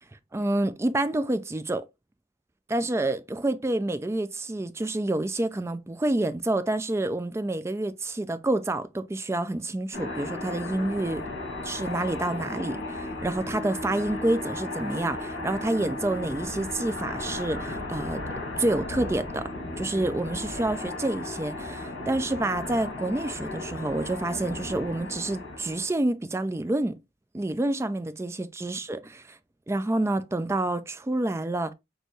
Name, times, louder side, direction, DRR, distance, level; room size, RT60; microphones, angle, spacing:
voice 1, 0.3-1.9 2.7-11.2 11.6-18.2 18.6-19.5 19.8-27.0 27.3-29.0 29.3-29.4 29.7-31.7, right 2 dB, 15° right, 0.3 m, -28 dB
sound 1, 9.9-25.9, left 2 dB, 80° left, 2.2 m, -35 dB
6.2 x 2.6 x 3.1 m
head